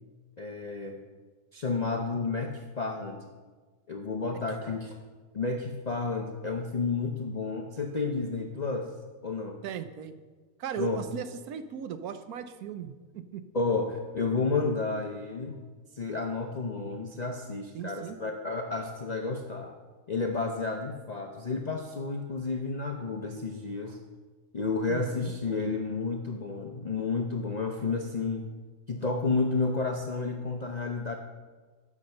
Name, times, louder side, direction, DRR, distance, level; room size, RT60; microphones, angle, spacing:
voice 1, 0.4-1.0 1.5-3.3 3.9-5.0 5.3-8.9 9.2-9.6 10.8-11.0 13.5-15.6 15.9-19.7 20.1-24.0 24.5-28.5 28.9-31.1, left 3 dB, 55° left, 2 dB, 0.4 m, -31 dB
voice 2, 9.6-10.2 10.6-13.4 17.7-18.2 24.9-25.3, right 8 dB, 75° right, 10 dB, 1.1 m, -38 dB
8.5 x 5.9 x 6.5 m, 1.4 s
omnidirectional pair, 1.7 m